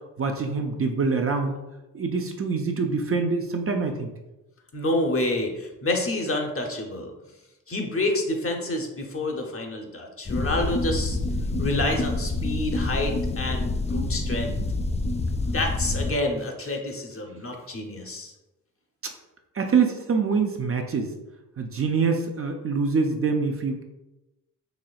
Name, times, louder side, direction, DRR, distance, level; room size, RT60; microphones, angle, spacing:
voice 1, 0.2-1.6 1.9-4.1 19.0-19.1 19.5-21.1 21.6-23.8, right 5 dB, 40° right, 3 dB, 0.5 m, -25 dB
voice 2, 4.7-7.1 7.7-11.2 11.6-14.6 15.5-18.3, left 2 dB, 40° left, 2 dB, 0.8 m, -28 dB
sound 1, 10.3-16.1, left 2 dB, 20° left, 0.3 m, -27 dB
4.2 x 2.9 x 2.4 m, 0.99 s
supercardioid pair, 50°, 36 cm